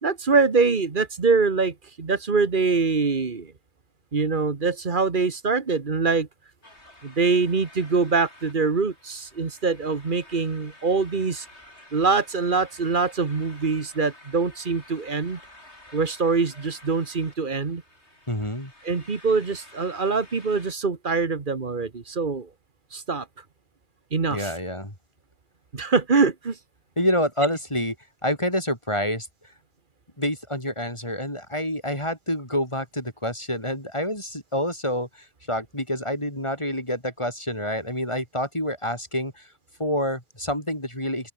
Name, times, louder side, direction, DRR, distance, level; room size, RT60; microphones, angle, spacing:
voice 1, 0.0-3.5 4.1-6.3 7.0-11.4 11.9-15.4 15.9-17.8 18.8-22.5 22.9-23.2 24.1-24.5 25.7-26.5, right 4 dB, 45° right, 1.6 m, -24 dB
sound 1, 6.6-20.7, left 1 dB, 65° left, 8.2 m, -51 dB
voice 2, 18.3-18.7 24.3-24.9 27.0-28.0 28.2-29.3 30.2-39.5 39.8-41.3, equal, 25° left, 6.5 m, -27 dB
omnidirectional pair, 1.2 m